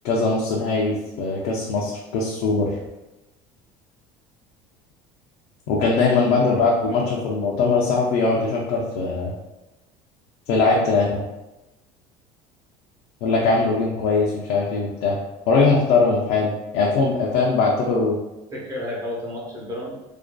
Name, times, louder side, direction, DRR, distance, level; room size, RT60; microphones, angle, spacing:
voice 1, 0.0-2.8 5.7-9.3 10.5-11.2 13.2-15.2 15.5-18.2, left 3 dB, 75° left, -3 dB, 0.5 m, -21 dB
voice 2, 6.4-7.2 18.5-20.0, left 1 dB, 25° right, -5 dB, 0.8 m, -32 dB
2.5 x 2.3 x 2.2 m, 1.0 s
cardioid pair, 145°, 15 cm